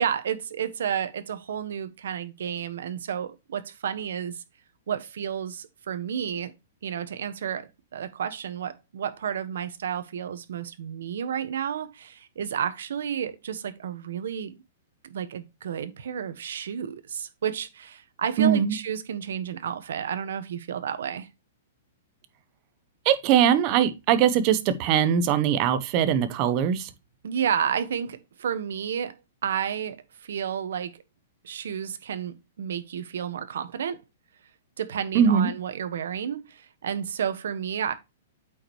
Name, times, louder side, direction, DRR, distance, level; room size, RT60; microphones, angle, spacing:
voice 1, 0.0-4.4 4.9-6.5 6.8-14.5 15.1-21.3 27.2-29.1 29.4-31.0 31.4-34.0 34.8-37.9, right 8 dB, 70° right, 1.2 m, -31 dB
voice 2, 18.4-18.8 23.0-26.9 35.1-35.5, right 8 dB, 25° right, 0.8 m, -21 dB
8.4 x 5.2 x 3.0 m
hypercardioid pair, 175°, 0 cm